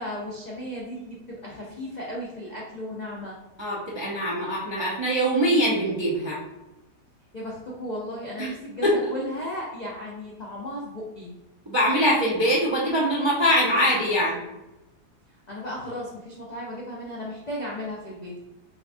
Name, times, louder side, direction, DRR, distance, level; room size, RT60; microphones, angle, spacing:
voice 1, 0.0-3.4 7.3-8.8 9.1-11.3 15.5-18.4, left 1 dB, 55° left, -4 dB, 0.4 m, -35 dB
voice 2, 3.6-6.4 8.4-8.5 8.8-9.1 11.7-14.4, equal, 40° right, -6 dB, 0.4 m, -23 dB
6.5 x 2.3 x 2.6 m, 0.98 s
omnidirectional pair, 1.7 m